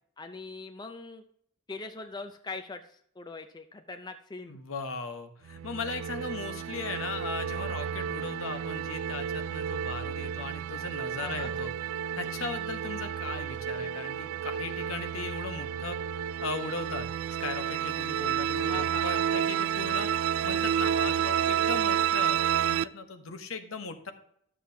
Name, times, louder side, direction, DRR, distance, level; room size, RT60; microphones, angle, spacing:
voice 1, 0.2-1.2 1.7-4.6 11.2-11.5 18.7-19.6, left 3 dB, 20° left, 7 dB, 0.5 m, -42 dB
voice 2, 4.5-11.7 12.2-16.0 16.4-17.1 17.4-20.2 20.4-24.1, left 4 dB, 70° left, 8 dB, 1.0 m, -38 dB
sound 1, 5.5-22.8, right 9 dB, 75° right, 0.3 m, -30 dB
12.5 x 7.3 x 2.8 m, 0.68 s
head